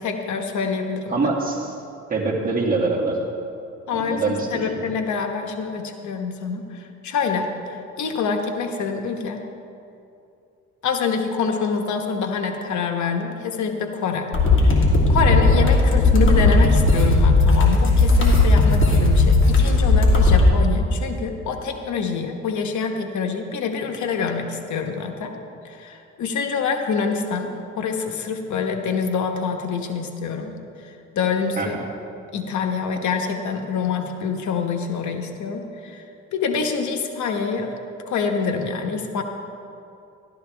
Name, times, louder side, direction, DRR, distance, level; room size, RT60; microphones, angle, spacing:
voice 1, 0.0-1.3 3.9-9.4 10.8-14.3 14.6-25.4 25.6-30.5 30.8-31.7 32.3-36.0 36.3-37.8 38.1-39.2, left 5 dB, 70° left, 4 dB, 1.1 m, -26 dB
voice 2, 1.1-1.7 2.1-3.2 3.9-4.8 31.6-31.7, right 3 dB, 30° right, -3 dB, 2.2 m, -24 dB
sound 1, 14.3-20.4, left 2 dB, 40° left, 2.6 m, -16 dB
13.0 x 12.5 x 3.4 m, 2.6 s
cardioid pair, 90°, 30 cm